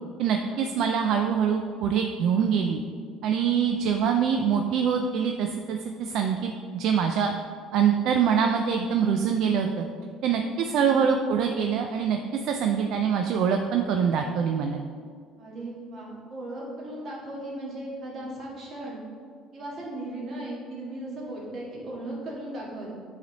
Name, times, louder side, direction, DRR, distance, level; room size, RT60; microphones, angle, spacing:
voice 1, 0.2-2.8 3.2-7.3 7.7-9.9 10.2-12.2 12.4-14.8, right 7 dB, 55° right, 4 dB, 0.3 m, -24 dB
voice 2, 15.4-19.0 19.5-22.9, right 1 dB, 35° right, -5 dB, 1.6 m, -37 dB
7.9 x 3.3 x 3.9 m, 2.1 s
cardioid pair, 165°, 0 cm